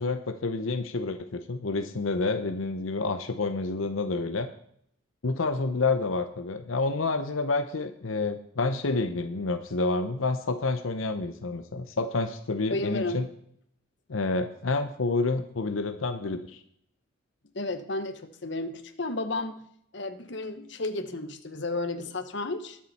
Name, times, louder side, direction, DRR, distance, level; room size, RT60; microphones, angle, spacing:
voice 1, 0.0-4.5 5.2-13.3 14.1-16.6, left 3 dB, 90° left, 8 dB, 0.8 m, -29 dB
voice 2, 12.7-13.3 17.5-19.7 19.9-22.8, left 2 dB, 60° left, 9 dB, 1.2 m, -33 dB
21.5 x 7.4 x 4.2 m, 0.69 s
head